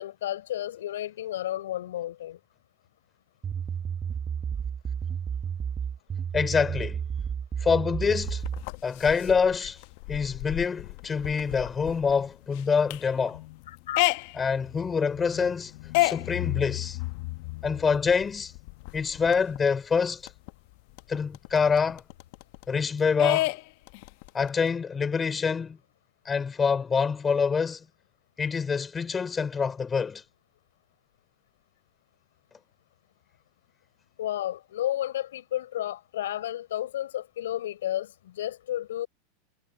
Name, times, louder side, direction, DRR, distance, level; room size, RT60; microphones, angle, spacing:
voice 1, 0.0-2.4 13.9-14.0 34.2-39.1, left 12 dB, 80° left, 4.2 m, -32 dB
sound 1, 3.4-8.6, right 7 dB, 25° right, 1.1 m, -32 dB
voice 2, 6.3-7.0 7.6-8.4 8.8-9.8 10.1-13.4 14.3-15.7 16.0-17.0 17.6-18.5 18.9-20.2 21.1-22.0 22.7-23.5 24.3-25.8 26.3-27.9 28.4-30.2, left 5 dB, 20° left, 3.9 m, -26 dB
sound 2, 8.1-19.6 19.9-20.0 20.3-22.8 23.2-24.7, left 20 dB, 60° left, 1.1 m, -32 dB
hypercardioid pair, 110°, 0 cm